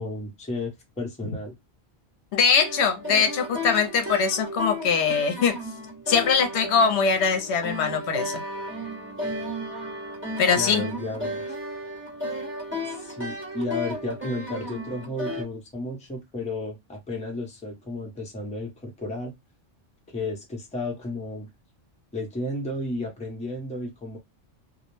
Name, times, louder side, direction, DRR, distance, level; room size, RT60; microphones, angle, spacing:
voice 1, 0.0-1.5 10.5-11.4 12.8-19.3 20.1-21.5 22.1-24.2, left 2 dB, 10° left, 0.6 m, -33 dB
voice 2, 2.3-5.6 6.1-8.4 10.4-10.8, left 6 dB, 75° left, 0.8 m, -22 dB
sound 1, 2.5-15.4, equal, 10° right, 0.9 m, -34 dB
2.3 x 2.0 x 3.0 m
omnidirectional pair, 1.2 m